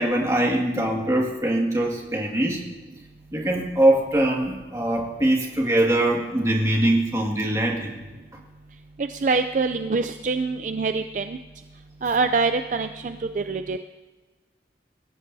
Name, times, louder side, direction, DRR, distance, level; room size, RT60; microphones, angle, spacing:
voice 1, 0.0-2.6 3.3-7.9, right 1 dB, 20° right, 0 dB, 2.0 m, -22 dB
voice 2, 9.0-11.4 12.0-13.8, right 4 dB, 45° right, 8 dB, 0.4 m, -25 dB
24.5 x 14.5 x 2.7 m, 1.3 s
head